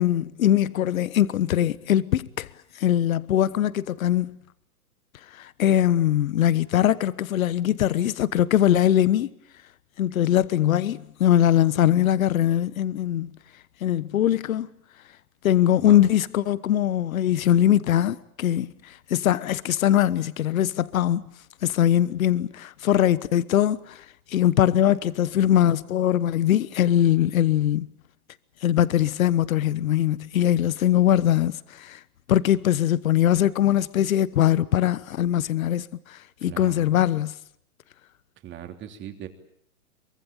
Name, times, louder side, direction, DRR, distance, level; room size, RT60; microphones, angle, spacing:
voice 1, 0.0-2.5 2.7-4.4 5.3-9.3 10.0-13.4 13.8-14.7 15.4-21.3 21.6-27.9 28.6-32.0 32.3-37.3, left 11 dB, 70° left, 1.2 m, -22 dB
voice 2, 36.4-36.9 38.4-39.3, right 11 dB, 25° right, 3.2 m, -39 dB
23.5 x 23.5 x 8.9 m
hypercardioid pair, 125°, 43 cm